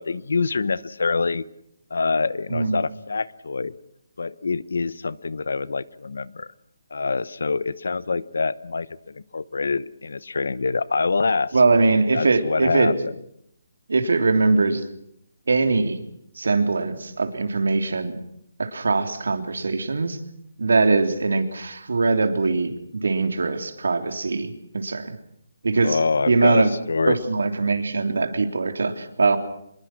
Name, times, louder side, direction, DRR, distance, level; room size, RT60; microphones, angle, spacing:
voice 1, 0.0-1.5 1.9-3.8 4.2-6.5 6.9-11.6 12.1-13.1 25.8-27.2, left 4 dB, 75° left, 19 dB, 1.0 m, -25 dB
voice 2, 11.5-12.9 13.9-14.8 15.5-16.0 16.4-18.2 18.6-20.2 20.6-25.1 25.6-26.0 26.3-26.7 27.1-29.4, right 3 dB, 85° right, 7 dB, 3.2 m, -21 dB
25.5 x 22.0 x 6.2 m, 0.75 s
hypercardioid pair, 180°, 0 cm